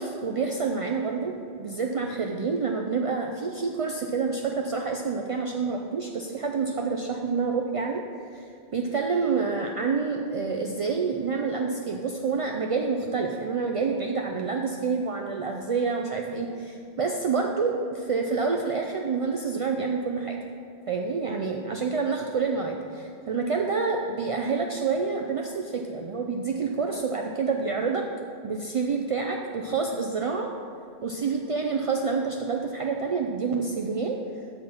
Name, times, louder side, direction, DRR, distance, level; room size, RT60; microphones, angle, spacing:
voice 1, 0.0-8.0 8.3-8.5 8.7-20.4 20.9-28.0 28.4-30.5 31.0-34.2, right 4 dB, 60° right, 2 dB, 0.3 m, -28 dB
6.5 x 5.8 x 5.9 m, 2.5 s
omnidirectional pair, 1.1 m